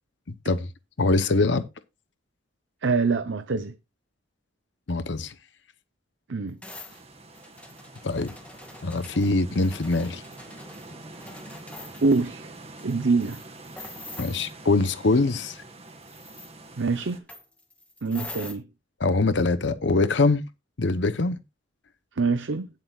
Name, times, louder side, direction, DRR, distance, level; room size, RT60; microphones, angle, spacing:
voice 1, 1.0-1.7 4.9-5.3 8.0-8.3 8.8-10.2 14.2-15.6 19.0-20.4 20.8-21.4, left 3 dB, 65° left, 0.8 m, -23 dB
voice 2, 2.8-3.7 6.3-6.6 12.0-12.5 12.8-13.4 16.8-17.2 18.0-18.7 22.2-22.7, right 4 dB, 75° right, 0.8 m, -24 dB
sound 1, 6.6-12.3 12.8-12.9 13.2-14.5 16.0-16.5 17.3-18.5, left 2 dB, 5° left, 2.3 m, -44 dB
sound 2, 6.9-17.2, right 2 dB, 35° right, 1.9 m, -45 dB
17.5 x 7.6 x 2.4 m
head